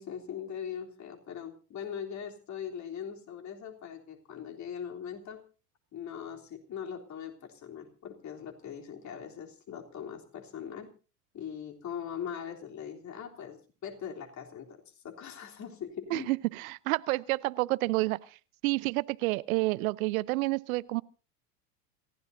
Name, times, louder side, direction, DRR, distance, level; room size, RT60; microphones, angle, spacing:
voice 1, 0.0-5.4 5.9-10.9 11.3-16.3, left 8 dB, 35° left, 3.7 m, -41 dB
voice 2, 16.1-18.2 18.6-21.0, right 21 dB, 60° right, 0.8 m, -29 dB
28.0 x 16.0 x 2.7 m
hypercardioid pair, 90°, 47 cm